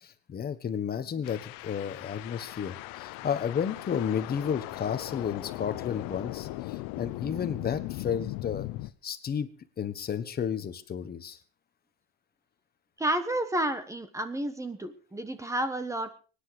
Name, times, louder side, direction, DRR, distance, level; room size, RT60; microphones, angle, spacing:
voice 1, 0.0-8.7 9.0-9.5 9.8-11.4, left 8 dB, 25° left, 10 dB, 1.3 m, -32 dB
sound 1, 1.2-8.9, left 18 dB, 60° left, 1.0 m, -38 dB
voice 2, 13.0-16.1, right 1 dB, 10° right, 11 dB, 1.2 m, -31 dB
23.5 x 10.0 x 5.1 m, 0.38 s
cardioid pair, 155°, 38 cm